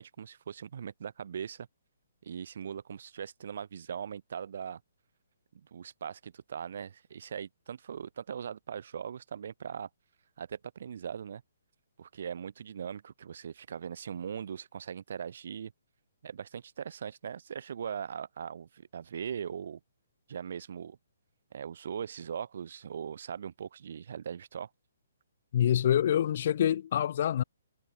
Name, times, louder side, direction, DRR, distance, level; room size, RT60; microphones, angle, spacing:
voice 1, 0.0-1.7 2.2-4.8 5.5-9.9 10.4-11.4 12.0-15.7 16.2-19.8 20.3-21.0 21.5-24.7, right 7 dB, 55° right, 5.2 m, -40 dB
voice 2, 25.5-27.4, left 10 dB, 40° left, 0.9 m, -26 dB
hypercardioid pair, 170°, 0 cm